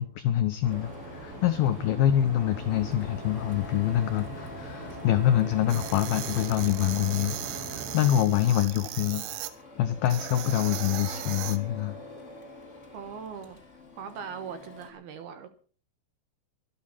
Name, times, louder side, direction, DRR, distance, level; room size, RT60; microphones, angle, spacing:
voice 1, 0.0-9.2 9.8-12.0, left 12 dB, 80° left, 2.2 m, -26 dB
sound 1, 0.6-8.1, right 2 dB, 40° right, 5.7 m, -41 dB
Printer, 0.7-14.9, left 3 dB, 20° left, 2.7 m, -46 dB
sound 2, 5.7-9.5 10.1-11.6, right 13 dB, 85° right, 3.3 m, -37 dB
voice 2, 12.9-13.6 14.0-15.5, right 7 dB, 65° right, 2.8 m, -40 dB
24.0 x 8.9 x 5.7 m
omnidirectional pair, 5.4 m